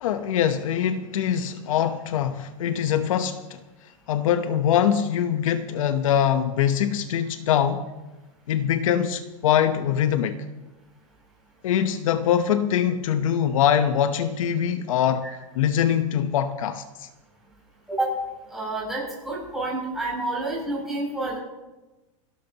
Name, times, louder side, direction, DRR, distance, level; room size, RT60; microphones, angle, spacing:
voice 1, 0.0-3.6 4.1-7.9 8.5-10.4 11.6-15.3 15.5-17.1, left 9 dB, 75° left, 1.0 m, -23 dB
voice 2, 18.5-21.4, right 2 dB, ahead, 7.1 m, -29 dB
30.0 x 12.5 x 3.0 m
supercardioid pair, 165°, 18 cm